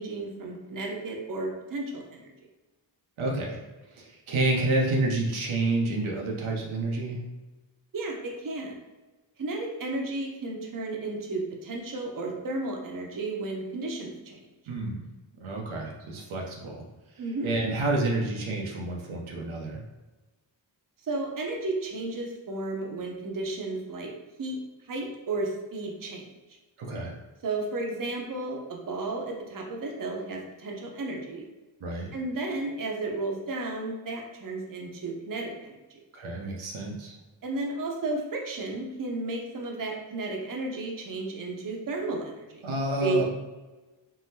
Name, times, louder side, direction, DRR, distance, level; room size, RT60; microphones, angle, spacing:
voice 1, 0.0-2.3 7.9-8.8 9.4-14.4 17.2-17.5 21.1-24.1 24.4-24.6 24.9-26.3 27.4-31.5 32.1-36.0 37.4-42.6 43.0-43.2, right 2 dB, 45° right, 0 dB, 0.7 m, -33 dB
voice 2, 3.2-3.6 4.0-7.2 14.7-15.0 15.4-16.8 17.4-19.8 26.8-27.1 31.8-32.1 36.1-37.2 42.6-43.2, right 2 dB, 80° right, -1 dB, 0.7 m, -29 dB
3.7 x 2.1 x 2.6 m, 1.2 s
cardioid pair, 45°, 49 cm